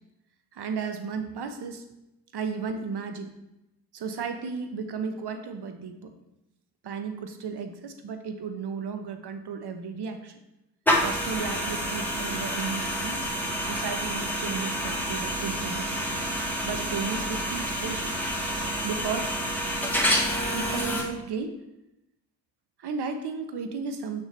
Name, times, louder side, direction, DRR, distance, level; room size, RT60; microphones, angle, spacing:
voice 1, 0.5-1.9 2.3-3.3 3.9-6.1 6.8-10.4 11.0-13.2 13.7-16.0 16.6-18.1 18.8-19.4 20.5-21.6 22.8-24.2, right 5 dB, 55° right, 7 dB, 1.0 m, -34 dB
sound 1, 10.9-21.0, equal, 5° left, 1.6 m, -28 dB
6.3 x 5.7 x 3.3 m, 0.89 s
hypercardioid pair, 40°, 48 cm